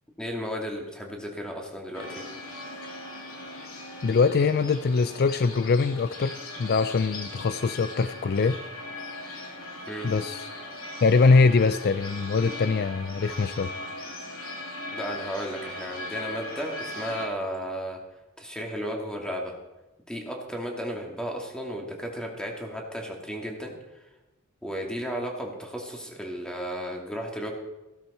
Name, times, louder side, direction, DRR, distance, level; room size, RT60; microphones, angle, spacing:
voice 1, 0.2-2.2 9.9-10.1 14.9-18.0 18.4-19.5 20.1-23.7 24.6-27.5, equal, 5° left, 0 dB, 2.4 m, -34 dB
sound 1, 1.9-17.3, left 2 dB, 85° left, 2.7 m, -39 dB
voice 2, 4.0-8.6 10.0-10.5 11.0-13.7, left 4 dB, 50° left, 12 dB, 0.4 m, -23 dB
16.0 x 12.0 x 4.3 m, 1.0 s
head